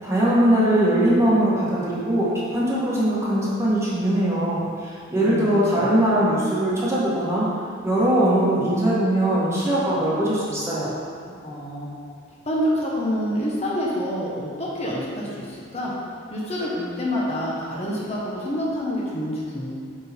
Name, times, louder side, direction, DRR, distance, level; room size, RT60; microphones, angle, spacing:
voice 1, 0.0-7.5 7.8-10.9, right 1 dB, 15° right, -8 dB, 1.4 m, -21 dB
voice 2, 5.2-5.5 5.7-5.9 11.4-11.9 12.4-15.9 16.3-19.7, equal, 30° left, -5 dB, 1.1 m, -27 dB
8.3 x 3.8 x 4.3 m, 2.2 s
head